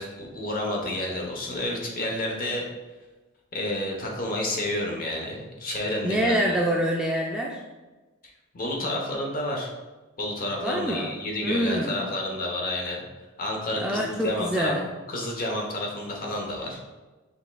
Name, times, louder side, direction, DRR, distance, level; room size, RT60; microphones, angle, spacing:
voice 1, 0.0-2.6 3.5-6.6 8.5-9.7 10.2-13.0 13.4-14.7 15.1-16.8, left 1 dB, 40° left, 0 dB, 0.9 m, -30 dB
voice 2, 6.0-7.6 10.6-11.1 11.4-12.0 13.8-14.8, equal, 5° right, -2 dB, 0.3 m, -26 dB
5.3 x 3.4 x 2.2 m, 1.2 s
head